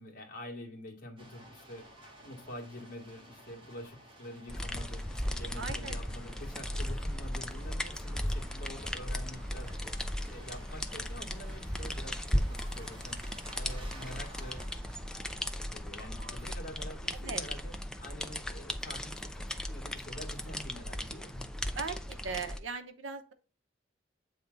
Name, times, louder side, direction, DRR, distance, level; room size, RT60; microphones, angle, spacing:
voice 1, 0.0-9.8 10.3-13.2 13.5-14.7 15.7-21.5, equal, 45° left, 1 dB, 1.9 m, -47 dB
sound 1, 1.2-16.5, right 1 dB, 25° right, 1.6 m, -54 dB
sound 2, 4.5-22.6, left 1 dB, 5° left, 0.4 m, -36 dB
voice 2, 5.6-6.0 6.6-6.7 17.2-17.4 21.7-23.3, right 5 dB, 80° right, 9 dB, 0.9 m, -39 dB
8.2 x 3.6 x 3.9 m, 0.36 s
head